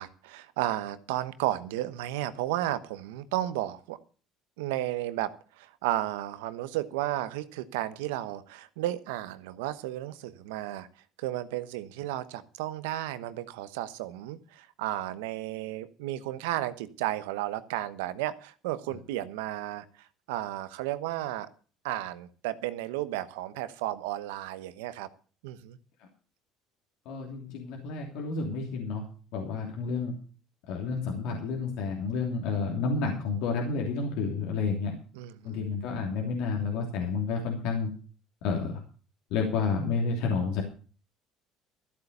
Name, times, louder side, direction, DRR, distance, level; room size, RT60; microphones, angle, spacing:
voice 1, 0.0-4.0 4.6-5.3 5.6-10.9 11.2-19.8 20.3-21.5 21.8-25.1 25.4-25.8 35.2-35.6, right 14 dB, 85° right, 14 dB, 1.0 m, -33 dB
voice 2, 27.0-29.0 29.3-30.1 30.7-34.9 35.4-37.9 38.4-38.8 39.3-40.6, left 4 dB, 75° left, 1 dB, 3.0 m, -30 dB
14.0 x 8.5 x 6.7 m, 0.39 s
supercardioid pair, 85°, 0 cm